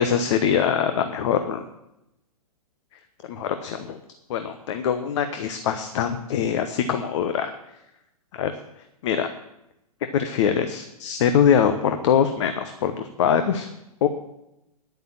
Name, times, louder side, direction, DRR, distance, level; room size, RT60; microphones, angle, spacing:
voice 1, 0.0-1.6 3.3-4.0 4.3-7.5 8.3-8.5 9.0-9.3 10.1-13.7 14.0-14.1, left 8 dB, 50° left, 8 dB, 1.0 m, -23 dB
10.5 x 9.1 x 7.5 m, 0.87 s
figure-of-eight pair, 115°, 19 cm